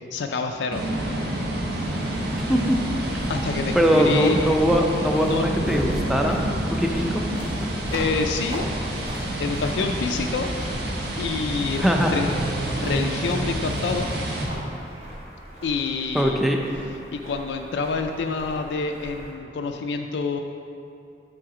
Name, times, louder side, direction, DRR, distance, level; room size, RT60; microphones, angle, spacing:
voice 1, 0.1-0.8 3.3-4.4 5.2-5.5 7.9-8.7 8.9-10.7 11.2-12.3 12.8-14.1 15.6-16.4 17.1-20.4, left 4 dB, 80° left, 4 dB, 0.4 m, -27 dB
sound 1, 0.7-14.4, right 1 dB, 60° right, 1.1 m, -29 dB
sound 2, 1.7-19.3, equal, 35° right, 1.1 m, -39 dB
voice 2, 2.5-2.8 3.7-6.4 6.7-7.3 11.8-12.1 16.1-16.6, equal, ahead, 1 dB, 0.5 m, -21 dB
sound 3, 11.7-15.1, right 2 dB, 85° right, 0.7 m, -35 dB
7.7 x 3.9 x 4.9 m, 2.6 s
head